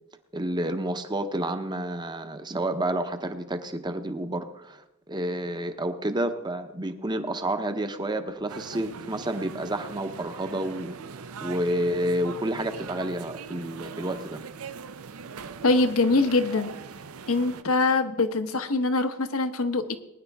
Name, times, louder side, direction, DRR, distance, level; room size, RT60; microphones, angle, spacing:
voice 1, 0.3-14.4, right 1 dB, 20° right, 8 dB, 0.8 m, -30 dB
sound 1, 8.5-17.6, right 5 dB, 80° right, 0.6 m, -41 dB
voice 2, 15.6-16.7 17.3-20.0, left 3 dB, 75° left, 9 dB, 1.0 m, -23 dB
20.5 x 10.0 x 3.5 m, 0.94 s
head